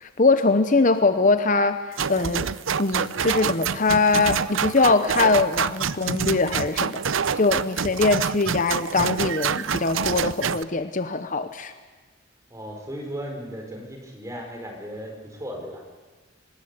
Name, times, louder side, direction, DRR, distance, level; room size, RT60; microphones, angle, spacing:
voice 1, 0.0-1.8 2.1-2.5 2.8-11.7, left 3 dB, 40° left, 10 dB, 0.9 m, -22 dB
sound 1, 2.0-10.6, right 6 dB, 80° right, 0.7 m, -26 dB
voice 2, 12.5-15.8, equal, 15° right, 2 dB, 4.8 m, -36 dB
25.0 x 20.0 x 8.3 m, 1.4 s
head